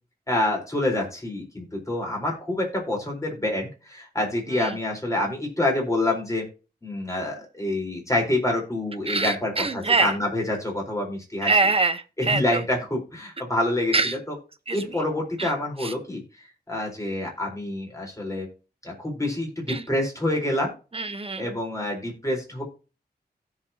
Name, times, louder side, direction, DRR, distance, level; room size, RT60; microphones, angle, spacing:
voice 1, 0.3-6.5 6.8-11.6 12.2-14.4 14.7-16.2 16.7-18.5 18.8-20.7 21.4-22.6, left 1 dB, 20° left, 4.3 m, -27 dB
voice 2, 9.1-10.1 11.4-12.4 13.9-14.1 14.7-14.8 15.4-15.5 15.8-15.9 19.7-19.8 20.9-21.5, right 3 dB, 35° right, 1.0 m, -24 dB
16.5 x 5.9 x 2.9 m
wide cardioid pair, 115°, 17 cm